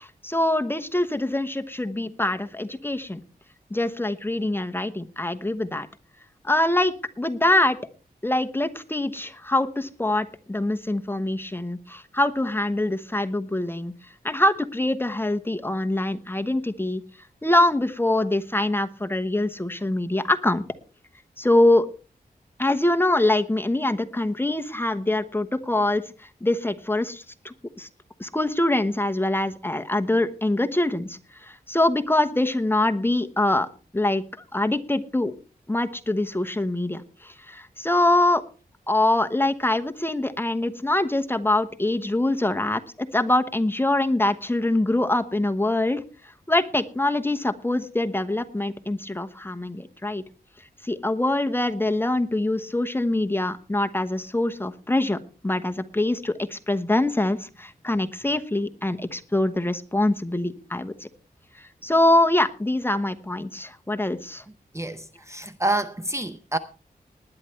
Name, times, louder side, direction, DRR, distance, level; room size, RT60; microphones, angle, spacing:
voice 1, 0.0-3.2 3.7-5.9 6.4-7.8 8.2-13.9 14.2-17.0 17.4-20.6 21.4-21.9 22.6-26.0 26.4-27.9 28.2-33.7 33.9-34.2 34.5-35.3 35.7-38.4 38.9-46.0 46.5-50.2 50.8-55.2 55.4-61.1 61.8-64.4, left 1 dB, 15° left, 1.1 m, -24 dB
voice 2, 64.7-66.6, right 2 dB, 15° right, 0.7 m, -28 dB
19.5 x 10.0 x 3.2 m
wide cardioid pair, 105°, 17 cm